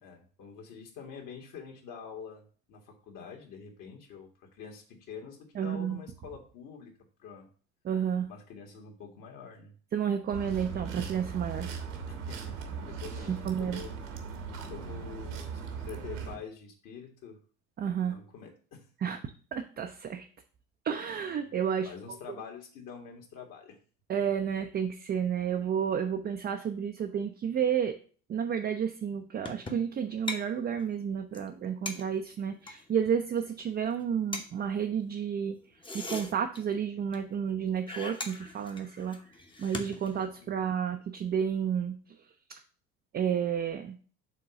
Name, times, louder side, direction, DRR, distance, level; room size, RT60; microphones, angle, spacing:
voice 1, 0.0-6.9 7.2-7.5 8.3-9.7 12.1-13.9 14.7-17.4 18.0-18.9 21.4-21.5 21.8-23.8 40.4-40.7, left 6 dB, 50° left, 1 dB, 1.9 m, -46 dB
voice 2, 5.5-6.0 7.8-8.3 9.9-11.7 13.3-13.8 17.8-18.2 19.0-19.2 19.5-20.2 20.8-21.9 24.1-28.0 28.3-35.6 35.9-39.2 39.6-42.0 43.1-43.9, right 8 dB, 25° right, 4 dB, 0.6 m, -31 dB
sound 1, 10.3-16.3, right 6 dB, 70° right, 1.4 m, -39 dB
sound 2, 29.4-30.0 30.3-30.4 30.7-30.8 31.1-31.2 31.3-31.5 31.9-32.8 33.4-33.6 33.9-34.0 34.3-34.5 35.6-36.9 37.1-37.2 37.4-37.6 37.9-40.5, left 2 dB, 10° left, 1.0 m, -40 dB
6.3 x 3.8 x 5.8 m, 0.41 s
figure-of-eight pair, 65°, 41 cm